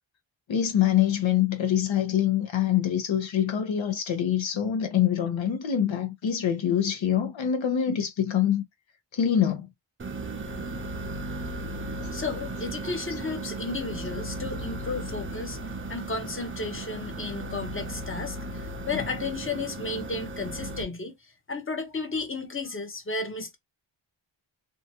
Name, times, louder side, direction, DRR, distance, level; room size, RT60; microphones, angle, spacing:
voice 1, 0.5-8.6 9.1-9.7 12.0-12.1, left 10 dB, 75° left, 0.9 m, -25 dB
sound 1, 10.0-20.8, right 2 dB, 30° right, 0.5 m, -36 dB
voice 2, 12.1-15.6 15.9-23.6, left 3 dB, 25° left, 0.8 m, -33 dB
2.8 x 2.3 x 2.8 m
wide cardioid pair, 125°, 46 cm